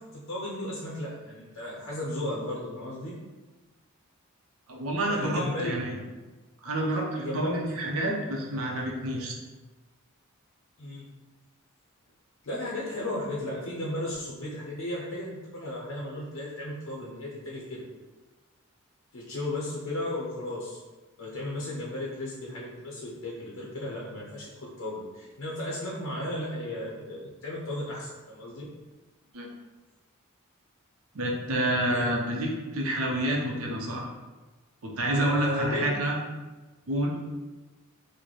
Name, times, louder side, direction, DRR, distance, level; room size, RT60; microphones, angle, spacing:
voice 1, 0.0-3.1 5.1-5.8 7.2-7.5 7.8-7.9 10.8-11.1 12.4-17.8 19.1-20.8 21.2-28.7 31.9-32.1 35.1-35.9, left 1 dB, 70° left, -5 dB, 0.6 m, -35 dB
voice 2, 4.7-6.0 6.6-9.3 29.3-29.5 31.1-34.1 34.8-36.2 36.9-37.1, right 1 dB, 85° right, -1 dB, 0.7 m, -28 dB
4.0 x 2.1 x 3.1 m, 1.2 s
head